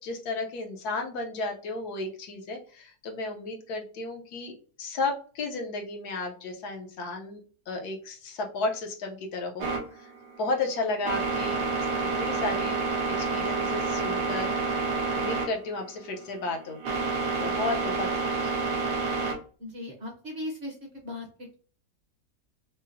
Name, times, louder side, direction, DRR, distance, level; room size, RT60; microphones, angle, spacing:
voice 1, 0.0-4.5 4.8-7.4 7.7-10.1 10.4-11.6 12.2-12.8 13.2-17.1 17.4-18.7, left 3 dB, 70° left, 2 dB, 1.2 m, -33 dB
sound 1, 9.6-19.3, right 4 dB, 85° right, 1.5 m, -29 dB
voice 2, 19.6-21.3, left 1 dB, 50° right, 0 dB, 0.9 m, -37 dB
5.5 x 2.0 x 2.5 m, 0.41 s
omnidirectional pair, 1.8 m